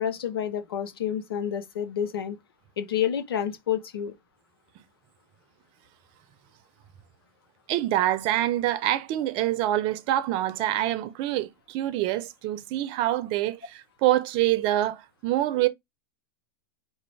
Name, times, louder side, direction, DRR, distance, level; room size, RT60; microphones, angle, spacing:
voice 1, 0.0-2.4 2.8-4.1, left 9 dB, 85° left, 1.0 m, -29 dB
voice 2, 7.7-15.7, right 14 dB, 45° right, 0.7 m, -26 dB
5.0 x 2.6 x 3.4 m
hypercardioid pair, 110°, 12 cm